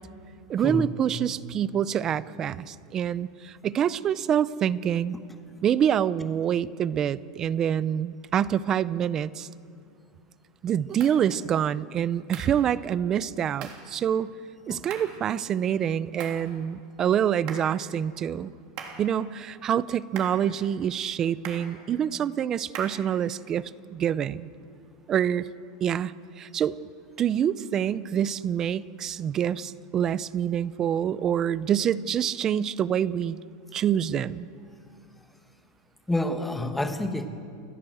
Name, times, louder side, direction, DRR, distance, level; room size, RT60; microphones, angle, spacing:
voice 1, 0.5-5.2 5.6-9.5 10.6-14.3 14.7-18.5 19.0-24.5 25.1-25.5 25.8-26.8 27.2-33.4 33.7-34.5, right 9 dB, 25° right, 18 dB, 0.5 m, -26 dB
sound 1, 11.0-11.2 12.3-12.6 13.6-13.9 14.9-15.2 16.2-16.5 17.5-17.8 18.8-19.1 20.2-20.5 21.4-21.7 22.7-23.1, right 7 dB, 40° right, 3.2 m, -40 dB
voice 2, 36.1-37.3, left 1 dB, 5° left, 6 dB, 1.3 m, -28 dB
28.5 x 14.5 x 7.9 m, 2.4 s
supercardioid pair, 165°, 2 cm